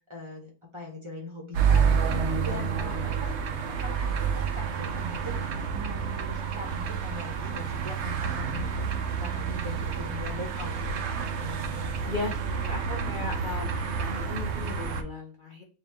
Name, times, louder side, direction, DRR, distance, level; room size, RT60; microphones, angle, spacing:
voice 1, 0.1-3.4 3.8-8.9 9.2-11.0, left 1 dB, 25° right, 0 dB, 0.8 m, -41 dB
sound 1, 1.5-15.0, right 6 dB, 75° right, 0.6 m, -29 dB
voice 2, 12.1-15.6, left 3 dB, 65° left, -1 dB, 0.4 m, -37 dB
3.6 x 3.0 x 3.4 m, 0.37 s
omnidirectional pair, 1.9 m